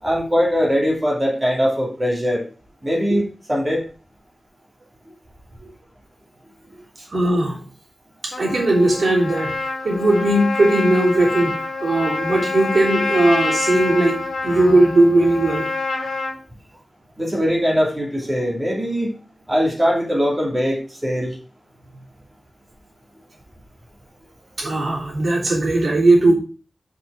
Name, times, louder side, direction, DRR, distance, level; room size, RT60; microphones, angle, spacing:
voice 1, 0.0-2.5 2.8-3.2 3.5-3.8 17.2-19.1 19.5-21.4, equal, 20° right, -3 dB, 2.6 m, -21 dB
voice 2, 7.1-7.6 8.2-11.5 11.8-15.6 24.6-26.3, right 2 dB, 70° right, -4 dB, 3.2 m, -18 dB
Trumpet, 8.3-16.4, left 3 dB, 80° left, 1.7 m, -26 dB
6.0 x 5.4 x 4.8 m, 0.38 s
wide cardioid pair, 90°, 0 cm